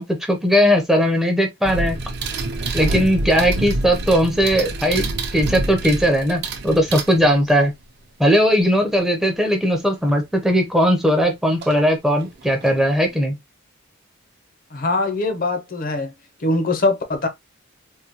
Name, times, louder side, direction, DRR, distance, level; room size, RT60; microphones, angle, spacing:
voice 1, 0.0-2.0 2.7-5.1 5.3-7.7 8.2-13.4, equal, ahead, 0.6 m, -18 dB
sound 1, 1.6-7.6 10.1-10.2 11.6-11.8 12.2-13.1, right 2 dB, 50° right, 0.6 m, -27 dB
voice 2, 14.7-16.1 16.4-17.3, left 2 dB, 45° left, 0.7 m, -22 dB
3.6 x 2.3 x 2.8 m
head